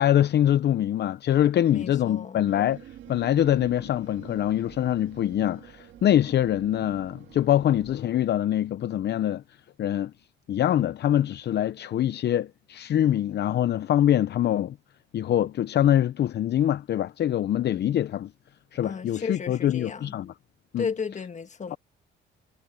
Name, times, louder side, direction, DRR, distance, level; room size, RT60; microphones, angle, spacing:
voice 1, 0.0-2.8 3.1-9.4 9.8-10.1 10.5-14.7 15.1-18.3 18.7-20.3 20.7-20.9 21.7-21.8, left 11 dB, 60° left, 0.6 m, -24 dB
voice 2, 1.7-2.4 18.8-20.2 20.8-21.8, left 5 dB, 35° left, 1.6 m, -34 dB
sound 1, 2.4-8.0, right 11 dB, 75° right, 1.8 m, -47 dB
cardioid pair, 90°, 20 cm